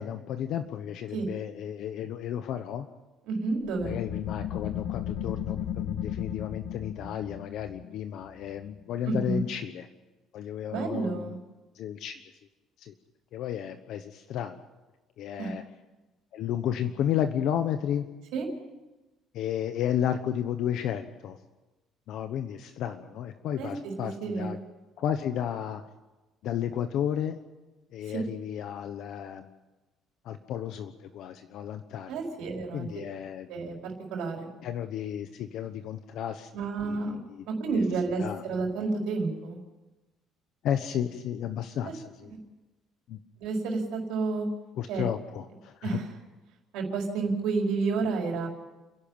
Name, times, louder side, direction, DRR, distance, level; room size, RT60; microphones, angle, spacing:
voice 1, 0.0-2.9 3.8-9.9 10.3-11.3 11.7-12.2 12.8-12.9 13.3-14.5 15.2-15.6 16.3-18.1 19.3-21.4 22.1-24.6 25.0-25.8 26.4-27.4 27.9-29.5 30.2-32.1 32.7-33.5 34.6-36.5 36.8-37.5 37.7-37.8 38.2-38.4 40.6-42.3 43.1-43.2 44.8-46.0, left 10 dB, 55° left, 8 dB, 1.1 m, -32 dB
voice 2, 3.3-4.0 9.0-9.4 10.7-11.4 15.4-15.5 18.3-18.5 23.6-24.6 28.1-28.2 32.1-32.9 33.5-34.5 36.5-37.2 37.5-39.6 41.8-41.9 43.4-44.5 44.9-45.1 45.8-46.0 46.7-48.5, right 4 dB, 75° right, 0 dB, 4.8 m, -30 dB
sound 1, 3.7-9.0, left 9 dB, 90° left, 1.5 m, -35 dB
29.5 x 11.5 x 8.9 m, 1.1 s
cardioid pair, 175°, 0 cm